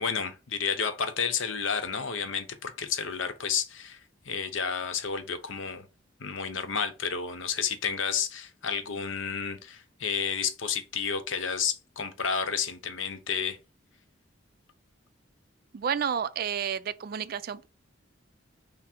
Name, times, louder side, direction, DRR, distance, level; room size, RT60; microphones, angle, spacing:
voice 1, 0.0-4.0 4.2-5.9 6.2-13.6, left 6 dB, 75° left, 0.7 m, -31 dB
voice 2, 15.7-17.7, right 7 dB, 50° right, 0.3 m, -30 dB
5.9 x 2.0 x 4.3 m
head